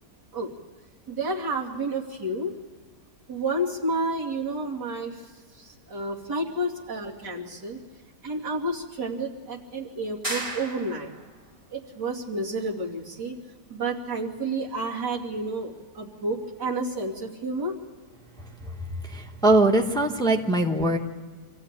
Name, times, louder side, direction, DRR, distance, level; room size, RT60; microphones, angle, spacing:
voice 1, 1.1-2.5 3.3-7.8 8.2-11.1 11.7-13.4 13.7-17.7, right 2 dB, 80° right, -3 dB, 3.3 m, -30 dB
sound 1, 10.2-11.3, right 1 dB, 20° right, 2.4 m, -33 dB
voice 2, 19.0-21.0, right 2 dB, 5° left, 3 dB, 1.2 m, -21 dB
26.0 x 15.0 x 9.0 m, 1.5 s
omnidirectional pair, 1.8 m